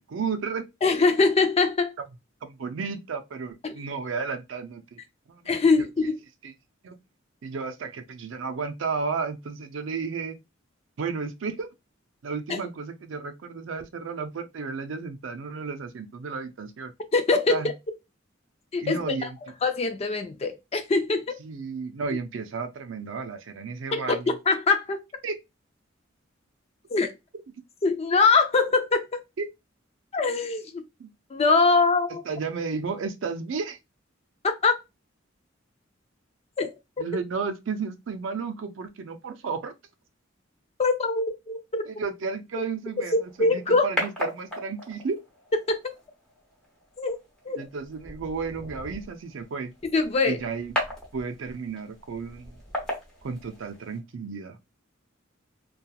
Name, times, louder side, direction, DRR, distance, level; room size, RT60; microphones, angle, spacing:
voice 1, 0.1-0.7 2.4-5.0 5.3-5.5 5.8-5.9 6.4-6.5 6.8-7.0 7.4-10.4 11.0-11.7 12.2-16.9 17.5-17.7 18.8-19.4 21.4-24.4 25.2-25.4 29.4-29.5 31.0-31.1 32.2-33.8 37.0-39.7 41.9-45.2 47.6-49.7 50.3-50.7 51.1-52.6 53.2-54.6, right 5 dB, 70° right, 0.4 m, -33 dB
voice 2, 0.8-1.9 3.6-3.8 5.5-6.2 12.5-12.6 17.1-17.6 18.7-19.3 19.6-21.4 23.9-25.0 26.9-27.1 27.8-29.2 30.1-30.8 31.3-32.2 34.4-34.7 36.6-36.7 40.8-41.8 43.4-43.8 47.0-47.2 47.5-47.6 49.9-50.4, left 4 dB, 30° left, 0.4 m, -23 dB
sound 1, 43.0-54.0, left 1 dB, 5° left, 0.8 m, -37 dB
2.8 x 2.3 x 2.3 m
head